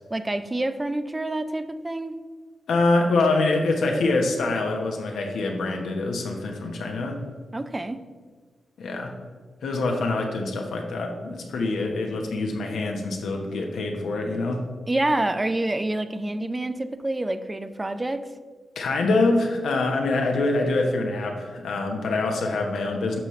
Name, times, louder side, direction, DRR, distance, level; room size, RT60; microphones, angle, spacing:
voice 1, 0.1-2.2 7.5-8.0 14.9-18.2, right 2 dB, 25° right, 11 dB, 0.5 m, -27 dB
voice 2, 2.7-7.2 8.8-9.1 9.6-14.6 18.8-23.2, left 2 dB, 80° left, 2 dB, 1.0 m, -25 dB
9.0 x 5.6 x 3.1 m, 1.5 s
supercardioid pair, 45°, 0 cm